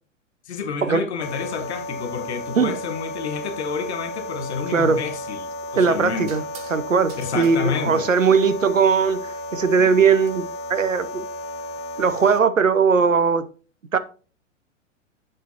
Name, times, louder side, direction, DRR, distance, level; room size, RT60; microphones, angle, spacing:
voice 1, 0.5-6.3 7.2-8.1, left 6 dB, 55° left, 2.0 m, -29 dB
sound 1, 1.2-12.4, left 1 dB, 25° left, 0.5 m, -33 dB
voice 2, 4.7-5.0 5.8-6.4 6.7-11.3 12.0-13.5 13.9-14.0, right 5 dB, 80° right, 0.9 m, -19 dB
sound 2, 5.0-5.2 6.3-6.8 7.1-7.5 9.7-10.3, right 6 dB, 35° right, 2.1 m, -44 dB
9.4 x 7.4 x 2.9 m
figure-of-eight pair, 105°, 39 cm